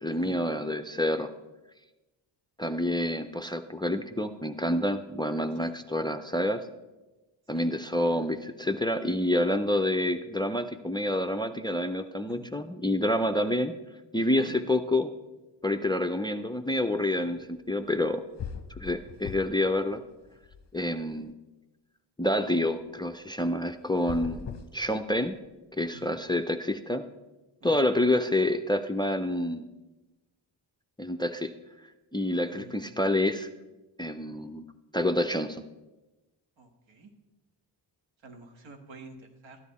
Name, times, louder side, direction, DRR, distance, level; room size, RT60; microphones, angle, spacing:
voice 1, 0.0-1.3 2.6-6.6 7.5-13.7 14.1-15.1 15.6-18.2 18.8-20.0 20.7-21.3 22.2-25.4 25.8-27.0 27.6-29.7 31.0-31.5 32.1-33.5 34.0-34.7 34.9-35.6, left 1 dB, 10° left, 10 dB, 0.3 m, -28 dB
sound 1, 18.0-18.1 18.4-19.7 20.0-21.1 23.9-25.5, left 7 dB, 35° left, 0.8 m, -41 dB
voice 2, 32.5-32.8 36.6-37.1 38.2-39.6, right 3 dB, 85° right, 5 dB, 1.6 m, -49 dB
13.5 x 10.0 x 4.1 m, 1.1 s
wide cardioid pair, 120°, 45 cm